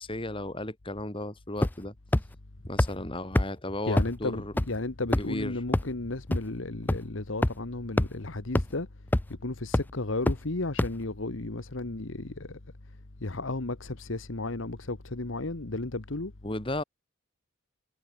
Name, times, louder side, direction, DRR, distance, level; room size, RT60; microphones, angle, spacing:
voice 1, 0.0-1.9 2.6-4.5 5.2-5.5 16.4-16.8, left 1 dB, 25° left, 3.7 m, -34 dB
sound 1, 1.6-1.9 2.1-2.2 2.8-2.9 3.3-3.4 4.0-4.1 4.6-4.7 5.1-5.3 5.7-5.8 6.3-6.4 6.9-7.0 7.4-7.5 8.0-8.1 8.5-8.6 9.1-9.3 9.7-9.8 10.3-10.4 10.8-10.9, left 1 dB, 10° left, 0.3 m, -23 dB
voice 2, 3.9-8.9 9.3-12.6 13.2-16.3, left 2 dB, 70° left, 1.4 m, -34 dB
head